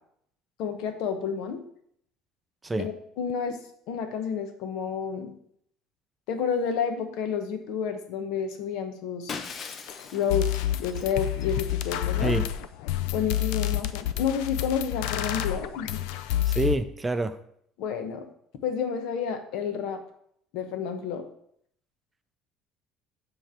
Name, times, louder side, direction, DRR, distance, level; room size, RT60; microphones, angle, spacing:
voice 1, 0.6-1.6 2.8-3.6 3.9-5.3 6.3-9.4 10.1-10.5 10.8-12.3 13.1-16.0 17.8-18.3 18.6-20.0 20.5-21.3, left 7 dB, 75° left, 7 dB, 0.9 m, -30 dB
Shatter, 9.3-12.0, left 5 dB, 35° left, 0.6 m, -41 dB
sound 1, 9.9-10.0 10.3-16.7, left 12 dB, 90° left, 0.4 m, -28 dB
voice 2, 16.5-17.4, right 2 dB, 15° right, 9 dB, 0.4 m, -27 dB
7.1 x 3.3 x 5.6 m, 0.69 s
cardioid pair, 135°, 0 cm